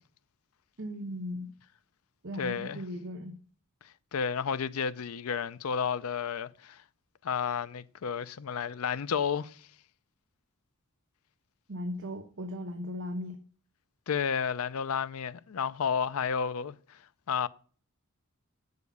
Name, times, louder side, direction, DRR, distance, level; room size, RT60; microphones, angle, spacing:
voice 1, 0.8-1.5 2.2-3.4 11.7-13.4, left 1 dB, 60° right, 1.0 m, -37 dB
voice 2, 2.4-2.8 4.1-6.8 7.2-9.6 14.1-17.0 17.3-17.5, left 6 dB, 75° left, 0.5 m, -31 dB
8.2 x 6.7 x 5.3 m
head